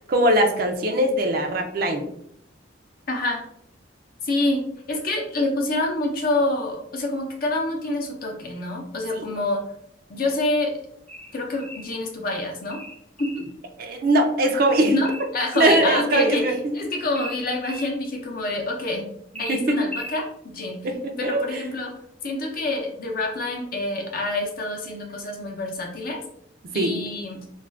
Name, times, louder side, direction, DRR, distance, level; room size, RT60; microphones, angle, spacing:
voice 1, 0.1-2.1 13.8-14.9 15.6-16.5 19.5-19.8 20.8-21.6 26.7-27.0, right 1 dB, 50° right, 4 dB, 0.4 m, -21 dB
voice 2, 3.1-3.4 4.2-9.6 10.1-10.7 11.3-12.8 13.2-13.5 14.9-16.5 16.7-19.1 19.4-20.3 20.5-20.8 21.2-21.9 22.2-26.2 26.7-27.4, left 2 dB, 50° left, 1 dB, 0.6 m, -27 dB
sound 1, 11.1-11.9 12.7-13.5 15.0-15.9 17.1-17.9 19.3-20.2, equal, 5° left, 0.5 m, -38 dB
2.4 x 2.2 x 3.3 m, 0.69 s
head